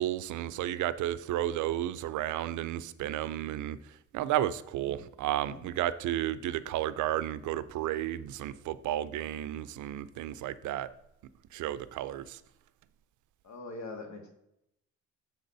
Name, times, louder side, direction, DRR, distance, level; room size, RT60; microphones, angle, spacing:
voice 1, 0.0-3.8 4.1-10.9 11.5-12.4, right 12 dB, 75° right, 15 dB, 0.5 m, -32 dB
voice 2, 13.4-14.3, left 3 dB, 65° left, 4 dB, 1.6 m, -42 dB
7.1 x 4.0 x 5.3 m, 0.83 s
cardioid pair, 90°, 30 cm